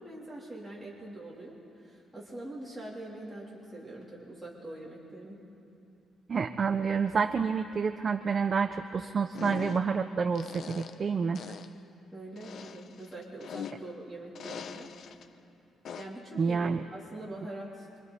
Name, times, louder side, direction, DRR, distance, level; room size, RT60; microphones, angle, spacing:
voice 1, 0.0-1.6 1.8-5.4 12.1-14.9 16.0-18.0, right 1 dB, 5° right, -7 dB, 3.3 m, -43 dB
voice 2, 6.3-11.4 16.4-16.8, right 5 dB, 30° right, 8 dB, 0.4 m, -28 dB
sound 1, 9.3-10.0 10.4-11.1 11.4-11.8 12.4-14.0 14.4-15.3 15.9-16.3, left 7 dB, 50° left, 0.7 m, -42 dB
25.5 x 25.0 x 4.1 m, 2.9 s
cardioid pair, 170°, 0 cm